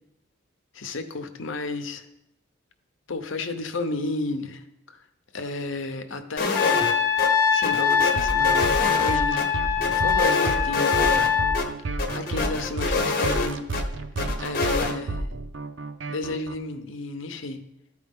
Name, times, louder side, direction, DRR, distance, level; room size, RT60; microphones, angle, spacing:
voice 1, 0.7-2.1 3.1-5.0 5.3-6.9 7.5-11.3 12.1-13.7 14.4-15.3 16.1-17.6, left 3 dB, 75° left, 8 dB, 0.7 m, -32 dB
sound 1, 6.4-6.9 7.2-7.3 7.6-9.5 9.8-11.3 11.5-11.7 12.0-13.8 14.2-14.9, left 3 dB, 45° left, 0.9 m, -26 dB
Trumpet, 6.6-11.6, left 7 dB, 15° left, 0.7 m, -23 dB
sound 2, 8.2-16.5, right 2 dB, 70° right, 0.6 m, -31 dB
13.0 x 4.7 x 3.6 m, 0.84 s
head